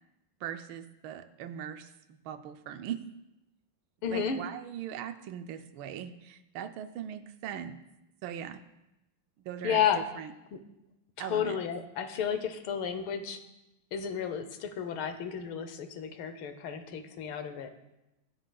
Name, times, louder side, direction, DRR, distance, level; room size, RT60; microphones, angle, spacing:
voice 1, 0.4-3.0 4.1-7.8 8.2-8.6 9.4-10.3 11.2-11.6, right 9 dB, 80° right, 9 dB, 1.4 m, -40 dB
voice 2, 4.0-4.4 9.6-10.0 10.5-10.6 11.2-13.4 13.9-17.7, left 8 dB, 80° left, 9 dB, 1.7 m, -32 dB
22.5 x 8.0 x 2.3 m, 0.95 s
omnidirectional pair, 2.2 m